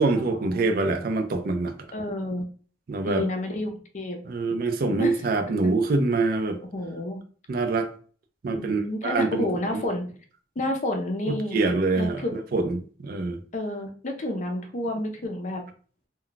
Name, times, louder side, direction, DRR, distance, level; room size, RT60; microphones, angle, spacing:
voice 1, 0.0-1.7 2.9-3.3 4.3-6.6 7.5-7.9 8.4-9.5 9.7-9.8 11.3-13.4, right 3 dB, 55° right, 0.4 m, -25 dB
voice 2, 1.9-2.4 3.1-4.2 5.0-5.2 6.7-7.2 8.5-10.0 10.6-11.6 12.0-12.3 13.5-15.6, left 1 dB, 40° left, 0.5 m, -30 dB
2.2 x 2.2 x 3.9 m
head